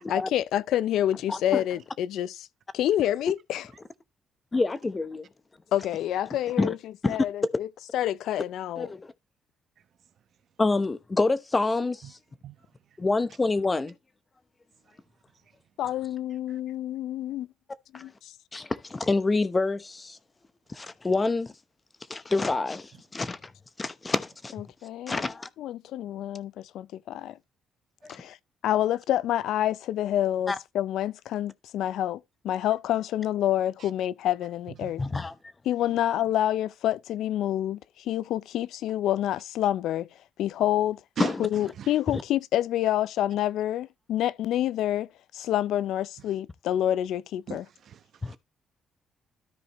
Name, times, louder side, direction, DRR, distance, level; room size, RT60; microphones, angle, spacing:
voice 1, 0.1-2.5 2.7-3.6 5.7-6.8 7.1-7.7 7.9-8.9 15.8-17.5 17.9-18.3 24.5-25.3 25.6-27.4 28.1-28.4 28.6-35.0 35.7-41.0 41.4-47.6, left 12 dB, 80° left, 0.4 m, -28 dB
voice 2, 1.3-1.6 4.5-5.3 6.6-6.7 7.0-7.2 8.8-9.1 10.6-12.2 13.0-13.9 17.9-18.0 18.5-20.2 20.7-21.5 22.1-23.5 23.8-24.5 25.1-25.5 28.0-28.2 30.5-30.6 35.0-35.3 41.2-41.5 42.1-42.2 48.2-48.4, left 3 dB, 25° left, 0.8 m, -27 dB
voice 3, 47.5-48.4, right 9 dB, 65° right, 1.0 m, -39 dB
13.0 x 4.9 x 3.0 m
cardioid pair, 90°, 0 cm